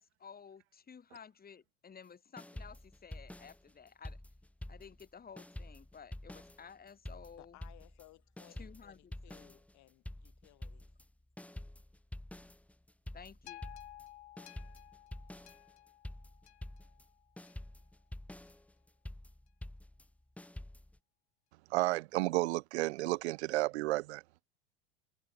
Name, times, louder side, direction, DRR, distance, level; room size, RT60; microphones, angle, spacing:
voice 1, 0.0-4.2 4.7-7.6 8.6-9.4 13.1-13.6, left 6 dB, 25° left, 3.8 m, -54 dB
sound 1, 2.4-5.1 5.4-21.0, left 1 dB, 5° left, 1.5 m, -48 dB
voice 2, 7.4-10.9, left 19 dB, 55° left, 6.2 m, -61 dB
sound 2, 13.5-17.8 18.5-18.6, left 15 dB, 75° left, 7.4 m, -55 dB
voice 3, 21.7-24.2, right 19 dB, 70° right, 0.8 m, -32 dB
hypercardioid pair, 75°, 34 cm